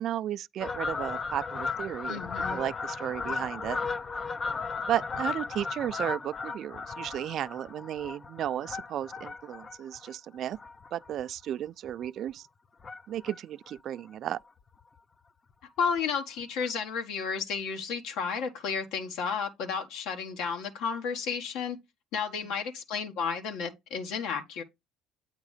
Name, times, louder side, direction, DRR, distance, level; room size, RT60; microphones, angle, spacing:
voice 1, 0.0-2.2 2.5-3.8 4.9-10.6 10.9-12.5 13.1-14.4, right 11 dB, 50° right, 0.4 m, -34 dB
Fowl, 0.6-11.4 11.8-12.1 12.8-13.4 13.7-13.8 14.0-14.1 14.4-14.5 14.8-15.0 16.0-16.1 16.6-16.7, left 4 dB, 25° left, 0.4 m, -36 dB
voice 2, 2.1-2.6 15.8-21.8 22.1-24.6, left 6 dB, 75° left, 1.6 m, -32 dB
8.8 x 3.7 x 5.0 m
cardioid pair, 125°, 0 cm